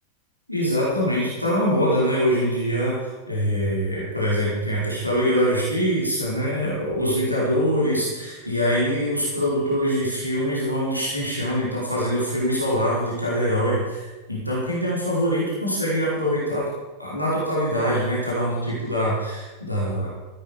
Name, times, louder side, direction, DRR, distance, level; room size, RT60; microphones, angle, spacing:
voice 1, 0.5-3.0 3.3-16.6 17.0-20.1, equal, 90° left, -7 dB, 4.8 m, -23 dB
15.5 x 12.5 x 5.3 m, 1.2 s
figure-of-eight pair, 90°, 0 cm